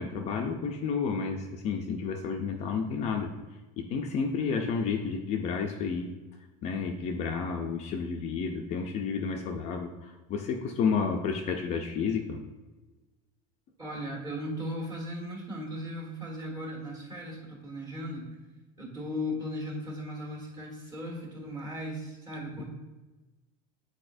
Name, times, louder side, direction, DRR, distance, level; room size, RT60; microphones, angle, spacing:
voice 1, 0.0-3.3 3.8-6.1 6.6-12.4 22.6-22.7, left 5 dB, 35° left, 2 dB, 0.5 m, -31 dB
voice 2, 13.8-18.3 18.8-22.6, equal, 20° right, -2 dB, 1.6 m, -37 dB
8.6 x 4.2 x 2.6 m, 1.2 s
cardioid pair, 160°, 19 cm